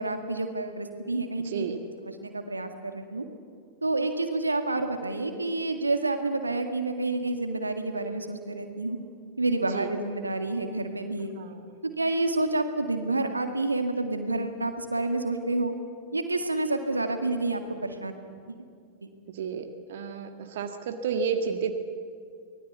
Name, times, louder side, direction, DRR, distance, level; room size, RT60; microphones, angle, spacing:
voice 1, 0.0-1.7 2.0-3.3 3.8-9.0 9.4-11.3 11.8-15.7 16.1-18.2 18.5-18.6 19.0-19.1, right 2 dB, 80° right, 7 dB, 1.9 m, -29 dB
voice 2, 1.4-1.8 9.7-9.9 11.4-11.6 19.3-21.8, right 6 dB, 55° right, 6 dB, 1.7 m, -31 dB
25.0 x 19.5 x 8.3 m, 2.3 s
figure-of-eight pair, 90°, 0 cm